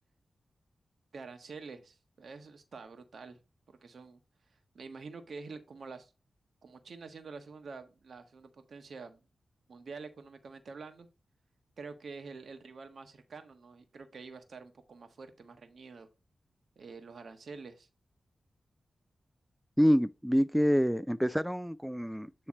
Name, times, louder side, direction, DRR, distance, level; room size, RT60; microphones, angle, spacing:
voice 1, 1.1-3.4 3.7-4.2 4.7-6.1 6.6-9.2 9.7-11.1 11.8-16.1 16.8-17.9, right 4 dB, 70° right, 1.3 m, -47 dB
voice 2, 19.8-22.5, equal, 5° right, 0.4 m, -27 dB
9.8 x 3.4 x 4.2 m
cardioid pair, 50°, 0 cm